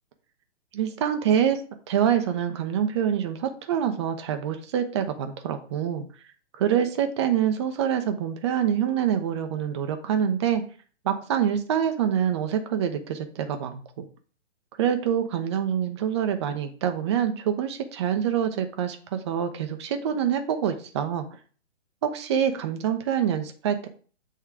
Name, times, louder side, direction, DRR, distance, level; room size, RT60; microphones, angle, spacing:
voice 1, 0.7-1.6 1.9-6.1 6.6-10.6 11.0-14.0 14.8-21.2 22.0-23.9, right 9 dB, 25° right, 7 dB, 0.5 m, -26 dB
7.9 x 3.6 x 3.3 m, 0.41 s
hypercardioid pair, 145°, 37 cm